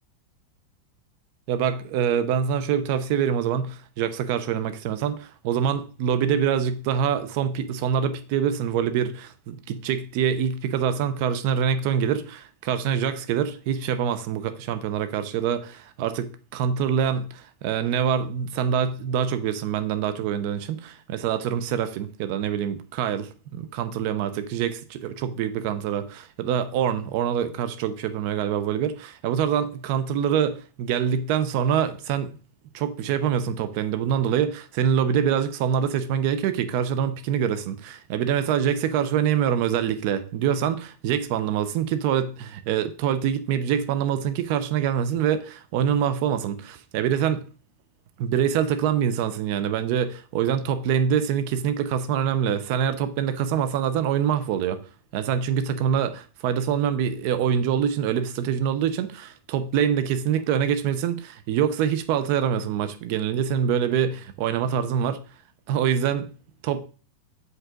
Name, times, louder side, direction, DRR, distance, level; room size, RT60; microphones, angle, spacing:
voice 1, 1.5-32.4 32.7-47.4 48.2-54.8 55.1-65.2 65.7-66.3 66.6-66.8, right 8 dB, 55° right, 0.8 m, -25 dB
7.5 x 5.4 x 3.9 m
supercardioid pair, 145°, 0 cm